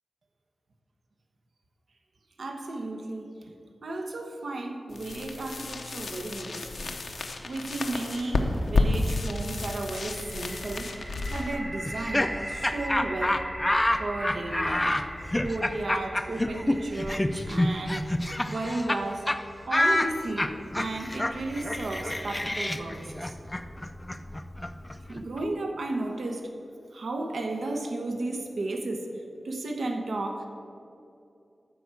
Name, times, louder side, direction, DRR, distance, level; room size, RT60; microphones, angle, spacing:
voice 1, 2.4-3.5 3.8-13.5 14.0-14.9 15.4-18.1 18.5-19.4 19.7-23.3 25.1-26.5 26.9-30.5, right 2 dB, 75° right, 4 dB, 1.1 m, -34 dB
sound 1, 4.9-12.6, left 2 dB, 80° left, 0.9 m, -31 dB
sound 2, 9.9-21.7, equal, 15° right, 1.0 m, -41 dB
Laughter, 11.8-19.0 19.3-19.4 19.7-25.4, left 1 dB, 15° left, 0.5 m, -28 dB
13.0 x 4.7 x 7.6 m, 2.6 s
wide cardioid pair, 110°, 0 cm